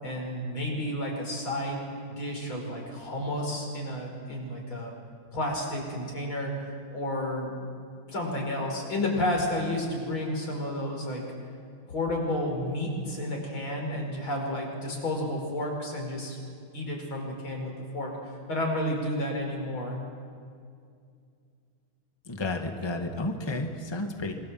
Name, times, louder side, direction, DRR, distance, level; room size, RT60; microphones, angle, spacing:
voice 1, 0.0-1.8 2.1-4.9 5.3-6.5 6.9-7.6 8.1-11.2 11.9-16.4 16.7-18.1 18.5-20.0, left 1 dB, 85° left, 0 dB, 6.0 m, -31 dB
voice 2, 22.2-24.3, left 2 dB, 15° left, 4 dB, 1.7 m, -31 dB
26.0 x 24.0 x 7.7 m, 2.3 s
omnidirectional pair, 2.2 m